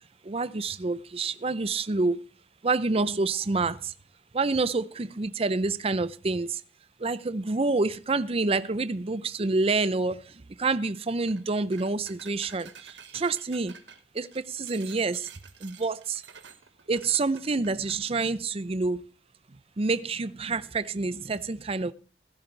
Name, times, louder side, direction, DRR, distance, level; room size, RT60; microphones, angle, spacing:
voice 1, 0.3-2.2 2.6-3.9 4.3-6.6 7.0-10.2 10.6-12.7 13.1-13.7 14.2-15.3 15.6-16.2 16.9-19.0 19.8-21.9, right 3 dB, 35° right, 0.6 m, -27 dB
sound 1, 11.2-11.4 11.7-18.0, right 7 dB, 80° right, 1.4 m, -50 dB
15.5 x 12.0 x 3.3 m
head